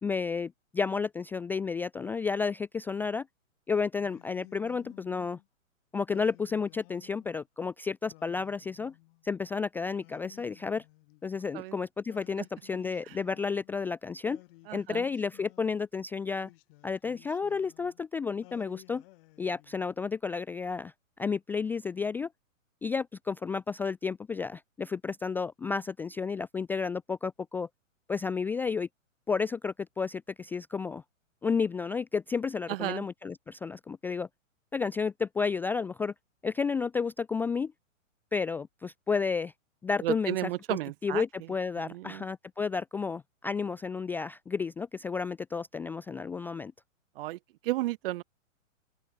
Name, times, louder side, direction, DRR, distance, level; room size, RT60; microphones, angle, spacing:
voice 1, 0.0-3.3 3.7-5.4 5.9-8.9 9.2-10.8 11.2-14.4 14.7-16.5 16.8-19.0 19.4-20.9 21.2-22.3 22.8-27.7 28.1-28.9 29.3-31.0 31.4-34.3 34.7-36.1 36.4-37.7 38.3-39.5 39.8-46.7, left 5 dB, 5° left, 0.4 m, -32 dB
Singing, 4.0-5.5 6.1-7.4 8.0-9.3 10.0-11.5 12.1-13.8 14.2-15.9 16.4-18.0 18.4-20.0, left 21 dB, 45° left, 7.3 m, -56 dB
voice 2, 14.7-15.0 32.7-33.0 40.0-41.2 41.8-42.2 47.2-47.4 47.6-48.2, right 17 dB, 45° right, 1.0 m, -33 dB
open air
hypercardioid pair, 125°, 40 cm